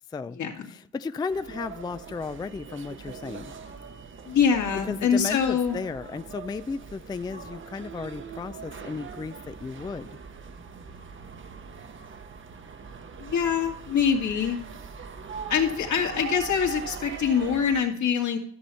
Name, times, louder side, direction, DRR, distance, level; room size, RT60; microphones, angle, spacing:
voice 1, 0.7-3.5 4.8-10.1, left 4 dB, 15° left, 13 dB, 0.3 m, -34 dB
sound 1, 1.3-17.8, right 6 dB, 40° right, 1.0 m, -41 dB
voice 2, 4.3-5.8 13.2-14.6 15.5-18.4, left 7 dB, 70° left, 2 dB, 2.4 m, -24 dB
13.5 x 6.8 x 4.2 m, 0.64 s
cardioid pair, 90°, 30 cm